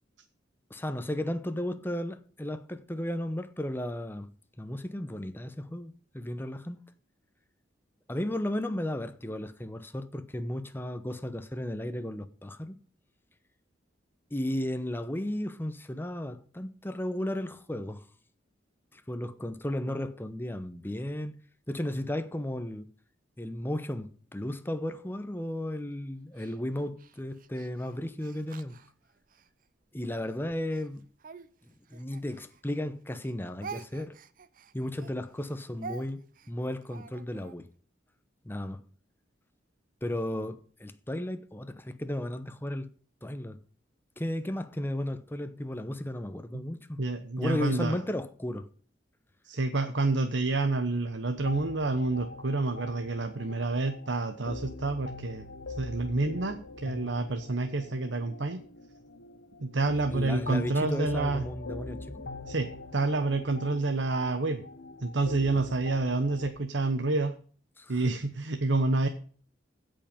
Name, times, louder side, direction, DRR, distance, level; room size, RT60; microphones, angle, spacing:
voice 1, 0.7-4.3 4.6-6.8 8.1-12.8 14.3-18.0 18.9-21.3 21.7-22.9 23.4-28.7 29.9-31.0 31.9-34.2 34.7-37.7 38.4-38.8 40.0-42.9 43.2-43.6 44.2-47.0 47.4-48.7 60.1-62.1 67.8-68.0, left 1 dB, 10° left, 0.9 m, -34 dB
Speech, 26.4-29.5 30.1-32.9 33.1-37.6, right 5 dB, 50° right, 0.7 m, -47 dB
voice 2, 47.0-48.0 49.4-55.5 55.8-58.6 59.6-61.4 62.5-64.7 65.0-67.4 67.9-69.1, right 2 dB, 85° right, 1.0 m, -28 dB
sound 1, 51.4-66.5, left 2 dB, 85° left, 1.0 m, -43 dB
16.0 x 5.6 x 5.2 m
head